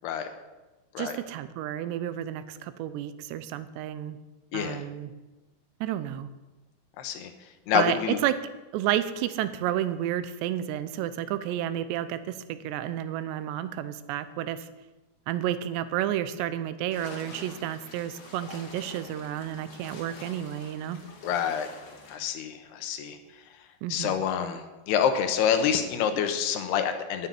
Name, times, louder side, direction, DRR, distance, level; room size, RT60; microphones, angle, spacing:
voice 1, 1.0-4.2 4.5-5.1 5.8-6.3 7.7-8.4 8.7-14.7 15.3-21.0 23.8-24.2, right 11 dB, 85° right, 13 dB, 2.9 m, -31 dB
voice 2, 4.5-4.8 7.0-7.3 7.7-8.2 21.2-21.7 22.1-23.2 23.9-27.3, left 8 dB, 75° left, 7 dB, 2.9 m, -27 dB
sound 1, 16.9-22.2, left 3 dB, 50° left, 3.5 m, -46 dB
9.8 x 9.3 x 9.5 m, 1.1 s
omnidirectional pair, 5.0 m